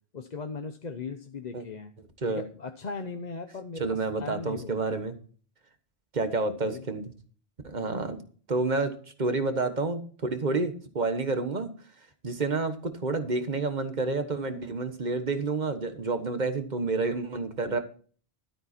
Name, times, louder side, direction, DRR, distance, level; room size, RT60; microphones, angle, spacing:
voice 1, 0.1-1.9 2.3-4.8 6.6-6.8 7.7-8.0, left 4 dB, 45° left, 6 dB, 0.9 m, -38 dB
voice 2, 3.8-5.2 6.1-7.1 7.6-8.2 8.5-11.7 12.2-17.8, right 3 dB, 45° right, 9 dB, 1.4 m, -29 dB
12.5 x 9.1 x 4.3 m, 0.42 s
omnidirectional pair, 1.1 m